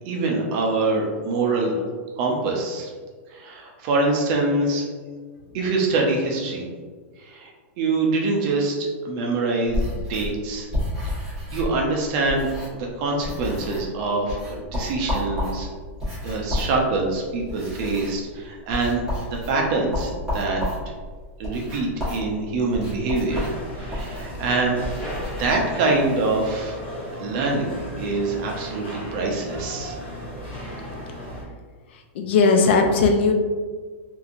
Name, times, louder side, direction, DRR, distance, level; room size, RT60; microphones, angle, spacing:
voice 1, 0.1-1.8 2.2-2.9 3.3-4.8 5.5-6.6 7.2-7.5 7.8-10.7 11.0-15.7 16.2-19.1 19.5-20.9 21.4-23.4 23.7-24.8 25.4-26.8 27.2-30.0, right 3 dB, 35° right, 0 dB, 0.5 m, -25 dB
sound 1, 9.7-12.9 13.2-14.0 14.3-25.5, left 1 dB, 5° right, 1.2 m, -31 dB
sound 2, 23.3-31.4, equal, 25° left, 0.9 m, -35 dB
voice 2, 32.1-33.3, left 4 dB, 55° left, 4 dB, 0.4 m, -17 dB
2.9 x 2.6 x 2.5 m, 1.5 s
supercardioid pair, 165°, 7 cm